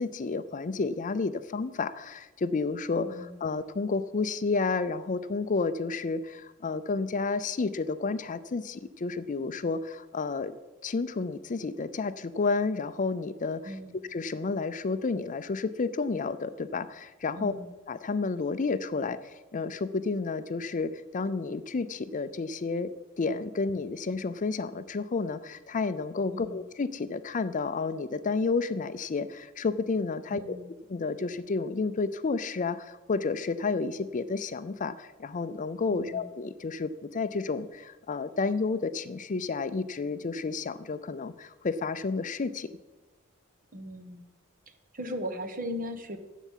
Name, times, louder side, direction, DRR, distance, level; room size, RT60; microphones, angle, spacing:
voice 1, 0.0-10.5 10.8-13.7 14.1-17.5 17.9-22.9 23.2-30.6 30.9-42.7, left 4 dB, 35° left, 13 dB, 0.5 m, -31 dB
voice 2, 3.0-3.4 13.6-14.0 17.4-17.7 26.3-26.6 30.3-30.7 35.9-36.3 43.7-44.2 44.7-46.2, equal, 40° right, 7 dB, 1.3 m, -38 dB
11.0 x 8.2 x 7.4 m, 1.2 s
head